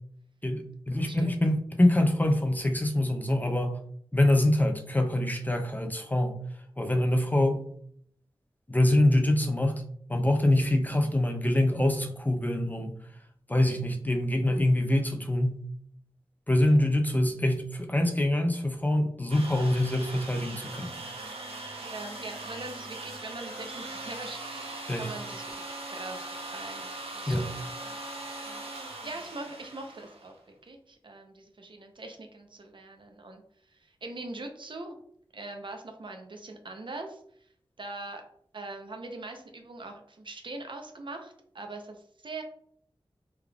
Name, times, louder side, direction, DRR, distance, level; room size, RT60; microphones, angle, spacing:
voice 1, 0.4-3.8 4.1-6.4 6.8-7.7 8.7-9.8 10.1-13.0 13.5-15.6 16.5-20.9 24.9-25.1 27.3-27.5, left 1 dB, 15° left, 5 dB, 0.4 m, -25 dB
voice 2, 1.0-1.4 10.8-11.1 16.6-16.8 21.8-28.0 28.5-30.3 30.7-33.4 33.7-35.0 35.3-37.2 37.8-38.2 38.5-42.4, right 2 dB, 55° right, 4 dB, 0.6 m, -42 dB
sound 1, 19.3-30.4, right 2 dB, 90° right, 0.7 m, -40 dB
3.5 x 3.3 x 2.3 m, 0.64 s
wide cardioid pair, 80°, 10 cm